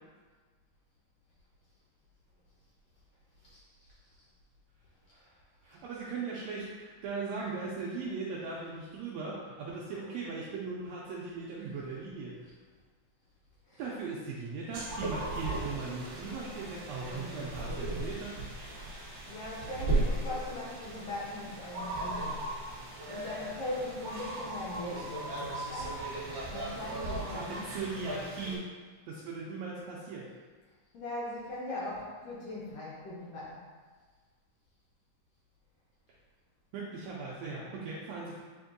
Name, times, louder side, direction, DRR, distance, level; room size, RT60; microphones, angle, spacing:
voice 1, 3.4-3.9 5.6-5.8 13.7-13.8 19.3-22.4 22.7-26.1 26.5-27.7 30.9-33.6, left 1 dB, 75° left, -7 dB, 1.5 m, -40 dB
voice 2, 5.6-12.5 13.8-18.3 27.3-28.6 29.1-30.3 36.7-38.4, right 4 dB, 85° right, -5 dB, 1.5 m, -39 dB
sound 1, 14.7-28.6, right 2 dB, 65° right, 1.1 m, -37 dB
7.5 x 2.6 x 2.5 m, 1.5 s
omnidirectional pair, 3.5 m